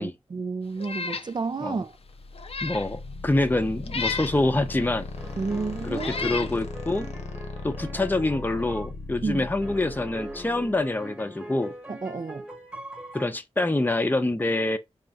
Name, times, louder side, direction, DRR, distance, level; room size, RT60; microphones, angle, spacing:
voice 1, 0.0-2.0 5.4-6.5 9.2-9.5 11.9-12.5, right 4 dB, 40° right, 0.4 m, -31 dB
Meow, 0.8-1.3 1.7-1.8 2.3-2.9 3.9-4.4 5.3-5.4 5.9-6.5, left 5 dB, 60° left, 0.5 m, -32 dB
sound 1, 2.0-10.9, left 3 dB, 80° left, 0.9 m, -38 dB
voice 2, 2.6-5.1 5.8-7.1 7.6-11.7 13.1-14.8, left 2 dB, 15° left, 0.6 m, -26 dB
sound 2, 5.2-8.9 9.6-13.3, equal, 10° right, 1.1 m, -41 dB
4.0 x 2.5 x 3.5 m
cardioid pair, 45°, 11 cm